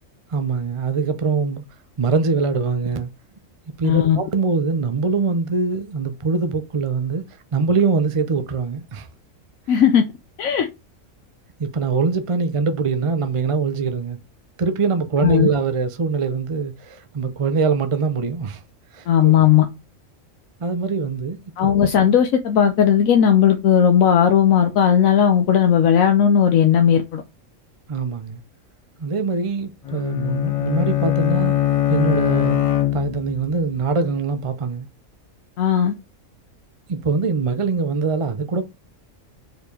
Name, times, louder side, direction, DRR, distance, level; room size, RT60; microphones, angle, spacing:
voice 1, 0.3-1.6 2.0-3.1 3.8-7.2 7.5-9.1 9.7-9.8 11.6-14.2 14.6-18.6 18.9-19.3 20.6-21.7 27.9-28.4 29.0-31.5 31.9-34.9 36.9-38.6, right 4 dB, 40° right, 0.4 m, -23 dB
voice 2, 3.8-4.2 9.7-10.0 10.4-10.7 15.2-15.5 19.1-19.7 21.6-27.2 35.6-35.9, left 8 dB, 80° left, 1.2 m, -16 dB
Bowed string instrument, 29.9-33.5, left 12 dB, 55° left, 0.4 m, -21 dB
4.9 x 4.5 x 5.2 m
omnidirectional pair, 1.4 m